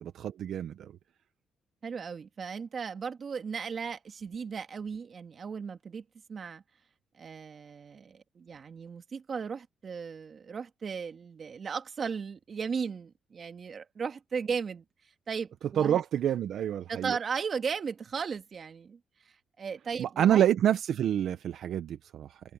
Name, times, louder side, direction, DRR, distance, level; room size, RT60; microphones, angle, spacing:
voice 1, 0.0-0.9 15.8-17.2 20.0-22.4, right 10 dB, 70° right, 0.9 m, -27 dB
voice 2, 1.8-6.0 6.3-6.6 7.2-14.8 15.3-16.0 16.9-19.0 19.6-20.4, right 6 dB, 45° right, 2.0 m, -36 dB
cardioid pair, 90°, 0 cm